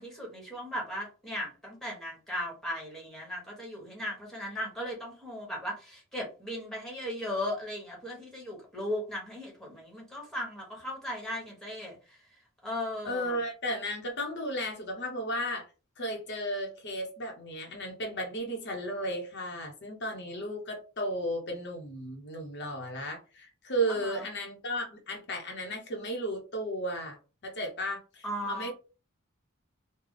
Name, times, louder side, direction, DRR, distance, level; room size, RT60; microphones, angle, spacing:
voice 1, 0.0-12.2 12.6-13.4 23.9-24.3 28.2-28.7, left 1 dB, ahead, -2 dB, 1.3 m, -37 dB
voice 2, 13.0-15.7 16.0-27.2 27.4-28.7, equal, 55° left, 1 dB, 0.9 m, -34 dB
3.3 x 2.2 x 3.8 m, 0.33 s
head